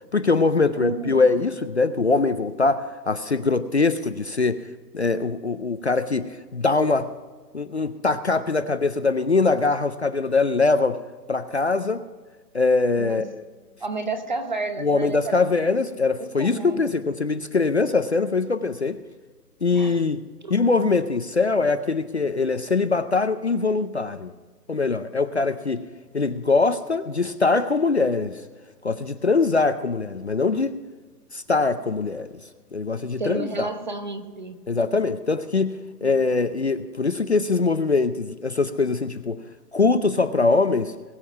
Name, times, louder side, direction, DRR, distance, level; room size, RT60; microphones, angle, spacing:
voice 1, 0.1-4.6 4.9-7.1 7.5-11.0 11.3-12.0 12.5-13.5 14.8-19.0 19.6-20.2 20.5-24.3 24.7-25.8 26.1-28.4 28.8-30.8 31.3-32.4 32.7-33.7 34.7-35.8 36.0-39.4 39.7-40.9, left 3 dB, 45° left, 11 dB, 0.5 m, -22 dB
voice 2, 0.8-1.2 13.0-13.2 13.8-15.5 16.2-16.9 19.7-20.0 20.4-20.6 33.2-34.6 36.0-36.2, right 3 dB, 30° right, 8 dB, 0.9 m, -31 dB
21.5 x 7.4 x 4.7 m, 1.4 s
hypercardioid pair, 175°, 49 cm